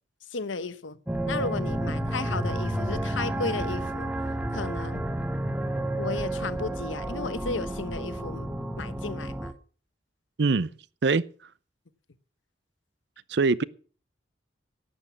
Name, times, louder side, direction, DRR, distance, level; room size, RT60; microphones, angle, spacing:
voice 1, 0.3-1.0 1.3-4.1 4.5-5.0 6.0-8.5 8.8-9.5, left 4 dB, 85° left, 0.9 m, -34 dB
sound 1, 1.1-9.5, right 1 dB, 5° right, 0.9 m, -31 dB
voice 2, 10.4-10.7 11.0-11.2 13.3-13.6, right 4 dB, 60° right, 0.5 m, -22 dB
11.5 x 8.9 x 7.1 m
head